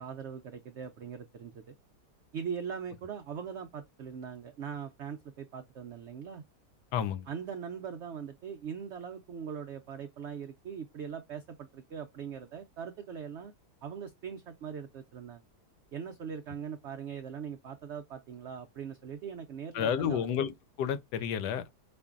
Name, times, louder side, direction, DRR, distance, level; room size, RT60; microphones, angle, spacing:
voice 1, 0.0-1.7 2.3-6.4 7.3-13.5 13.8-15.4 15.9-20.4, right 7 dB, 90° right, 0.6 m, -41 dB
voice 2, 6.9-7.3 19.7-21.7, left 8 dB, 90° left, 1.2 m, -31 dB
5.1 x 2.5 x 2.4 m
omnidirectional pair, 1.8 m